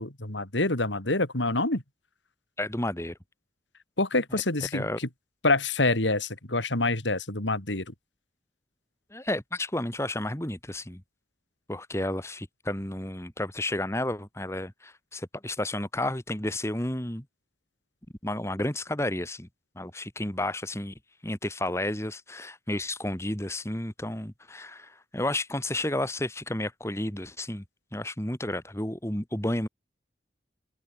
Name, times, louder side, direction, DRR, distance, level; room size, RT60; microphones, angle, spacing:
voice 1, 0.0-1.8 4.0-4.8 5.4-7.9, left 2 dB, 85° left, 4.0 m, -26 dB
voice 2, 2.6-3.2 4.7-5.0 9.1-11.0 11.7-17.2 18.2-19.5 19.8-20.9 21.2-27.6 27.9-29.7, left 1 dB, 15° left, 2.1 m, -31 dB
open air
head